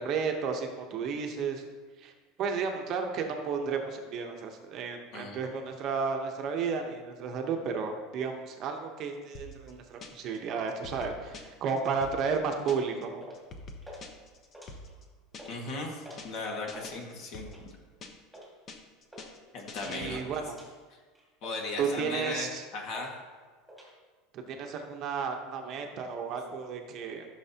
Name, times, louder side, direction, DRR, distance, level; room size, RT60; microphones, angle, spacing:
voice 1, 0.0-1.6 2.0-2.1 2.4-13.4 19.8-20.6 21.8-22.6 24.3-27.3, right 5 dB, 40° right, 4 dB, 1.0 m, -33 dB
sound 1, 9.3-10.4 10.7-13.0 13.3-15.7 16.0-16.4 16.7-18.4 18.7-20.5, left 3 dB, 30° left, 0.9 m, -46 dB
sound 2, 12.5-12.8 13.2-13.5 13.8-14.0 14.4-15.0 15.3-15.5 16.0-16.3 16.6-16.9 17.5-17.7 18.3-18.5 19.1-19.3 19.6-20.0 20.5-20.7 21.1-21.7 22.2-22.5 22.9-23.1 23.4-23.9, equal, ahead, 2.2 m, -48 dB
voice 2, 15.5-17.7 19.5-20.4 21.4-23.1, left 3 dB, 45° left, 1 dB, 1.9 m, -37 dB
14.5 x 6.6 x 2.9 m, 1.4 s
supercardioid pair, 160°, 0 cm